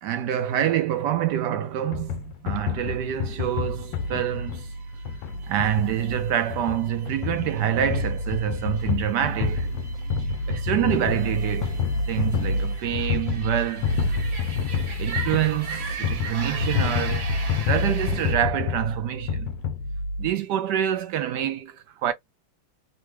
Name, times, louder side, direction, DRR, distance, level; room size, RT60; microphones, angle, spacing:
voice 1, 0.0-4.7 5.5-9.7 10.5-11.8 12.1-14.1 15.0-17.4 17.7-19.5 20.2-22.1, right 10 dB, 75° right, 1.0 m, -26 dB
sound 1, 1.9-20.3, left 4 dB, 75° left, 1.1 m, -28 dB
sound 2, 3.3-18.4, right 5 dB, 50° right, 1.4 m, -40 dB
3.4 x 2.2 x 3.1 m
omnidirectional pair, 2.1 m